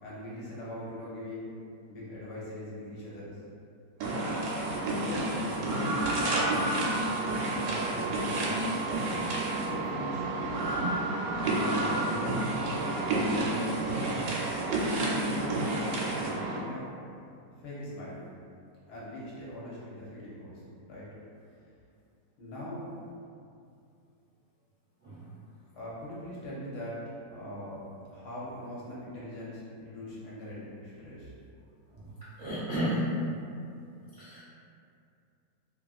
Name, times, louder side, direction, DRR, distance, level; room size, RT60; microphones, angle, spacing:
voice 1, 0.0-1.5 1.9-3.4 4.9-6.0 6.4-6.8 7.7-8.6 9.5-10.7 11.5-12.5 13.1-14.0 14.9-15.6 16.1-16.9 17.6-18.2 18.9-21.1 22.4-22.9 25.7-31.3, left 1 dB, 70° left, -7 dB, 1.2 m, -41 dB
sound 1, 4.0-16.6, right 2 dB, 85° right, 1.3 m, -30 dB
voice 2, 4.5-5.0 25.0-25.2 31.9-32.0 32.4-33.0 34.2-34.4, equal, 40° right, -13 dB, 0.5 m, -34 dB
3.0 x 2.5 x 2.3 m, 2.5 s
omnidirectional pair, 1.9 m